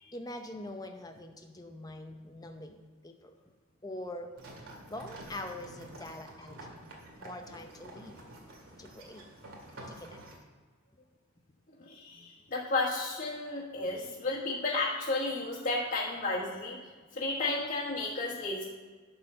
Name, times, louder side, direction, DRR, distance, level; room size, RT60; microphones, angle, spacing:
voice 1, 0.1-3.4 3.8-4.3 4.9-6.7 7.2-8.2 8.8-9.3 9.9-10.2, left 1 dB, 15° left, 5 dB, 0.7 m, -44 dB
sound 1, 4.4-10.4, right 1 dB, 75° right, 2.1 m, -49 dB
voice 2, 11.8-18.6, left 2 dB, 45° left, -7 dB, 1.5 m, -33 dB
11.5 x 4.1 x 6.8 m, 1.5 s
head